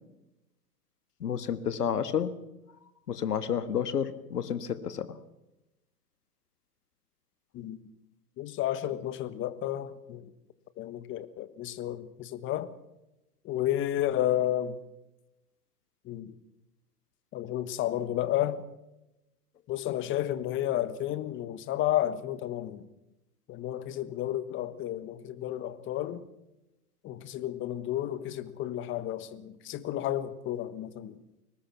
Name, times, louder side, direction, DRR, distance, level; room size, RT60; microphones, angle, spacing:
voice 1, 1.2-2.3 3.1-5.2, left 8 dB, 85° left, 1.7 m, -30 dB
voice 2, 8.4-10.2 10.8-12.7 13.4-14.8 16.0-16.3 17.3-18.6 19.7-22.8 23.5-26.2 27.0-31.2, left 12 dB, 25° left, 1.4 m, -32 dB
22.5 x 19.5 x 6.0 m
hypercardioid pair, 120°, 46 cm